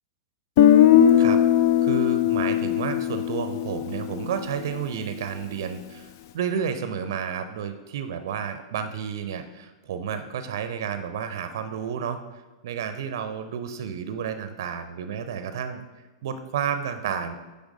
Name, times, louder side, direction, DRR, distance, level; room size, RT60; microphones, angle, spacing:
Guitar, 0.6-4.5, left 10 dB, 50° left, 0.3 m, -19 dB
voice 1, 1.8-12.2 12.6-15.8 16.2-17.3, right 7 dB, 55° right, 9 dB, 0.5 m, -31 dB
9.6 x 3.4 x 5.0 m, 1.3 s
figure-of-eight pair, 100°, 2 cm